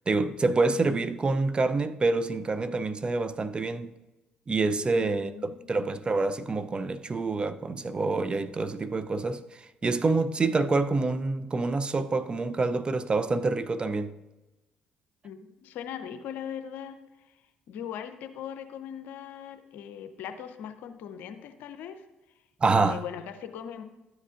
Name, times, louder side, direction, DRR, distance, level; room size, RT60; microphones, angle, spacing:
voice 1, 0.1-3.9 4.5-9.4 9.8-14.1 22.6-23.0, right 3 dB, 30° right, 0.5 m, -27 dB
voice 2, 5.0-5.9 15.2-17.0 17.7-22.0 22.8-23.8, left 8 dB, 70° left, 0.6 m, -40 dB
12.5 x 7.5 x 2.5 m
hypercardioid pair, 55°, 3 cm